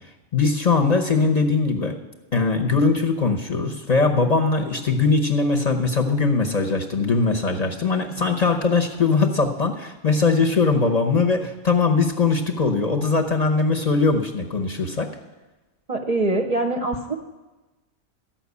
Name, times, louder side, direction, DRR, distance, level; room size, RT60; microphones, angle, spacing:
voice 1, 0.3-2.0 2.3-15.1, left 4 dB, 35° left, 3 dB, 0.8 m, -21 dB
voice 2, 15.9-17.1, right 2 dB, 40° right, 3 dB, 0.6 m, -23 dB
12.5 x 5.9 x 8.2 m, 1.1 s
omnidirectional pair, 1.3 m